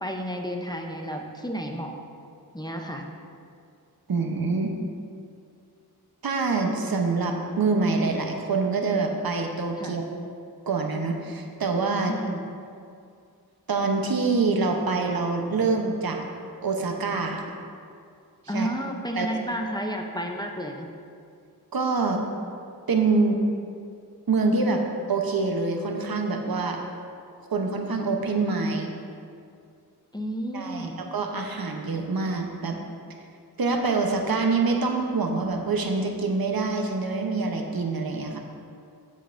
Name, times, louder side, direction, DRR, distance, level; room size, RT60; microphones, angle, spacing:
voice 1, 0.0-1.9 2.5-3.1 9.8-10.0 12.1-12.4 18.5-20.9 30.1-31.0, equal, 10° left, 1 dB, 0.6 m, -31 dB
voice 2, 4.1-4.7 6.2-10.1 10.7-12.1 13.7-16.2 16.6-17.4 18.5-18.7 19.2-19.3 21.7-22.2 22.9-23.4 24.3-26.8 27.5-28.9 30.5-32.8 33.6-38.4, right 3 dB, 70° right, 3 dB, 0.8 m, -25 dB
14.5 x 5.3 x 2.5 m, 2.3 s
wide cardioid pair, 90°, 38 cm